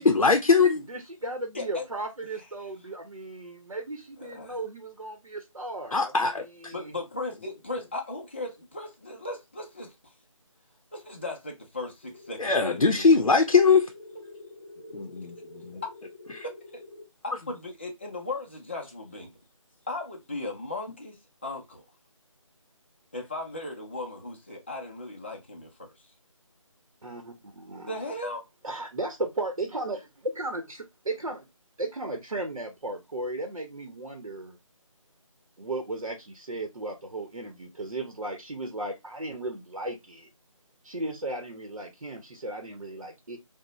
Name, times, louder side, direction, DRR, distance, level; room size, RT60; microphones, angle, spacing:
voice 1, 0.0-0.9 5.9-6.7 12.4-13.9 14.9-15.8 16.3-16.4, left 4 dB, 85° left, 0.6 m, -22 dB
voice 2, 0.9-7.0 27.0-28.1 28.6-31.4 31.8-34.6 35.6-40.3 40.8-43.4, right 2 dB, 75° right, 0.8 m, -35 dB
voice 3, 1.5-1.9 4.2-4.6 6.7-9.9 10.9-13.2 14.9-15.0 16.7-16.8 17.2-19.4 19.9-21.2 21.4-21.8 23.1-25.9 27.9-28.4, left 2 dB, 20° left, 0.4 m, -37 dB
sound 1, 12.0-17.0, left 2 dB, 45° left, 0.8 m, -47 dB
2.9 x 2.1 x 3.9 m
figure-of-eight pair, 160°, 17 cm